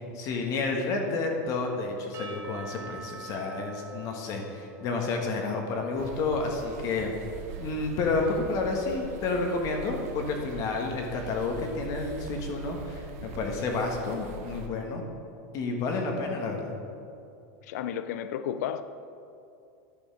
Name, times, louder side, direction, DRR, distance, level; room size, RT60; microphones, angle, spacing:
voice 1, 0.1-7.1 7.6-15.0 15.5-16.7, left 3 dB, 40° left, 2 dB, 1.3 m, -30 dB
Percussion / Church bell, 2.1-6.5, right 4 dB, 30° right, 1.0 m, -46 dB
sound 1, 6.0-14.7, right 4 dB, 65° right, 0.9 m, -42 dB
voice 2, 17.6-18.8, left 9 dB, 75° left, 12 dB, 0.4 m, -32 dB
10.5 x 5.3 x 6.3 m, 2.5 s
supercardioid pair, 140°, 9 cm